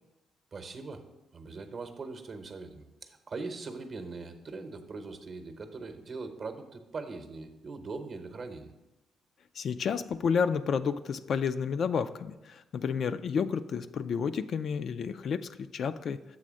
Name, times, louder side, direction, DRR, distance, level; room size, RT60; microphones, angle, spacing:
voice 1, 0.5-1.1 1.3-8.7, right 3 dB, 45° right, 7 dB, 0.8 m, -41 dB
voice 2, 9.6-16.2, left 6 dB, 60° left, 11 dB, 0.3 m, -30 dB
7.6 x 3.3 x 6.2 m, 1.0 s
cardioid pair, 90°, 0 cm